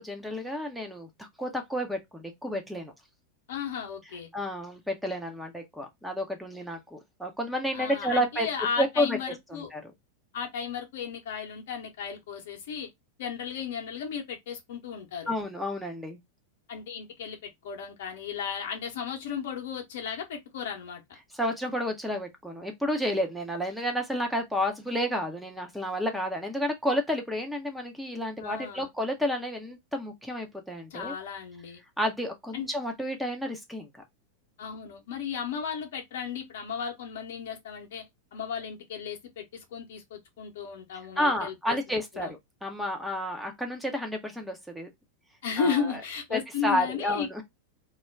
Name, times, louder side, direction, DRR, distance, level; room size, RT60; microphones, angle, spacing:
voice 1, 0.0-2.9 4.3-8.5 8.8-9.2 9.5-9.8 15.3-16.2 21.3-31.1 32.0-33.9 41.2-44.9 45.6-45.9 46.3-47.4, equal, ahead, 0.5 m, -31 dB
voice 2, 3.5-4.3 7.7-9.7 10.3-12.9 13.2-15.3 16.7-21.2 28.4-28.9 30.9-31.8 32.5-32.7 34.6-38.0 38.3-39.4 39.7-42.3 45.4-47.4, left 6 dB, 55° left, 0.7 m, -35 dB
2.3 x 2.1 x 3.2 m
figure-of-eight pair, 90°, 0 cm